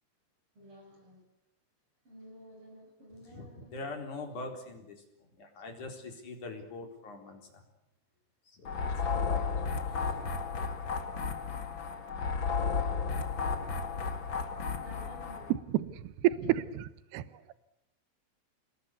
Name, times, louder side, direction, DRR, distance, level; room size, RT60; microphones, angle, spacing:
voice 1, 0.6-1.2 2.0-3.8 8.9-9.2 14.8-15.5, equal, 25° right, 7.7 m, -52 dB
voice 2, 3.3-4.9 5.4-7.6 8.5-9.5 9.9-10.1, left 3 dB, 40° left, 5.0 m, -43 dB
sound 1, 8.6-15.5, left 5 dB, 80° left, 1.1 m, -33 dB
voice 3, 16.5-17.2, right 14 dB, 75° right, 2.6 m, -31 dB
29.0 x 21.0 x 8.3 m
omnidirectional pair, 5.9 m